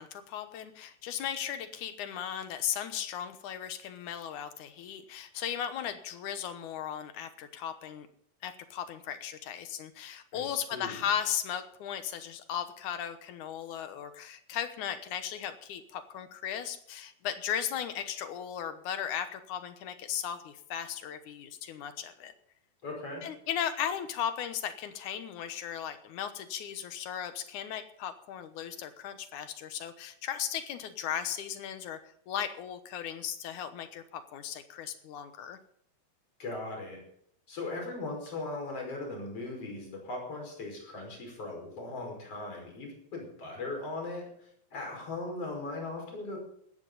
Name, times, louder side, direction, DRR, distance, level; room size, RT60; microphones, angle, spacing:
voice 1, 0.0-8.1 8.4-22.3 23.2-32.0 32.3-35.6, left 9 dB, 85° left, 10 dB, 2.6 m, -36 dB
voice 2, 10.3-11.0 22.8-23.2 36.4-37.0 37.5-46.4, left 2 dB, 50° left, 1 dB, 6.3 m, -39 dB
17.0 x 14.0 x 4.0 m, 0.67 s
omnidirectional pair, 3.4 m